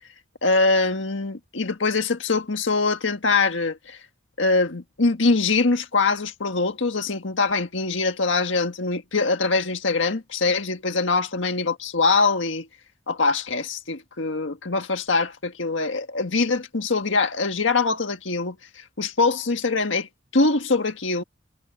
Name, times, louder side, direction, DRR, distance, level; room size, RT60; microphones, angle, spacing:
voice 1, 0.4-4.0 4.4-12.7 13.1-21.2, left 3 dB, 80° left, 1.6 m, -23 dB
head